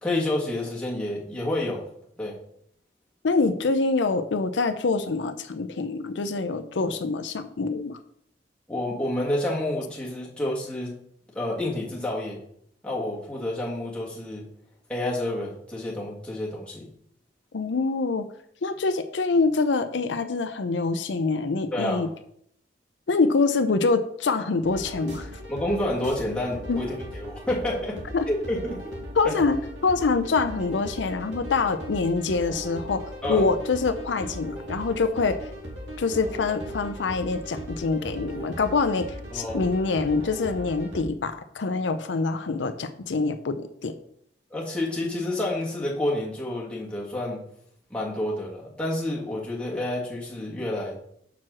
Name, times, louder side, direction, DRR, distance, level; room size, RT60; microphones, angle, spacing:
voice 1, 0.0-1.8 2.2-2.4 8.7-10.9 11.3-12.4 12.8-14.5 14.9-16.9 21.7-22.0 25.5-28.0 28.3-28.8 29.2-29.3 33.2-33.5 39.3-39.7 44.5-47.5 47.9-51.0, left 1 dB, 5° left, -5 dB, 1.8 m, -29 dB
voice 2, 3.2-8.0 17.5-18.2 18.6-22.1 23.1-25.3 26.7-26.8 28.1-28.3 29.2-35.4 36.0-39.1 39.3-43.9, left 4 dB, 85° left, 9 dB, 0.6 m, -25 dB
sound 1, 24.6-41.0, equal, 90° right, 2.4 m, -38 dB
6.0 x 4.6 x 6.2 m, 0.69 s
head